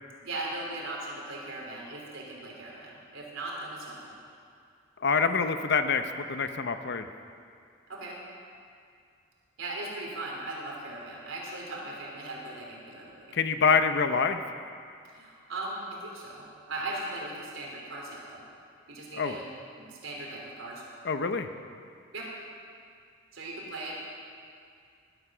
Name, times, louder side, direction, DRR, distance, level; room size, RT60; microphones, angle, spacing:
voice 1, 0.2-4.2 7.9-8.1 9.6-13.4 15.1-18.4 18.9-19.4 19.8-20.8 22.1-22.2 23.3-23.9, right 2 dB, 75° right, -3 dB, 3.4 m, -38 dB
voice 2, 5.0-7.1 13.3-14.4 19.2-19.4 21.0-21.5, left 5 dB, 55° left, 8 dB, 0.7 m, -26 dB
14.0 x 13.0 x 6.2 m, 2.3 s
head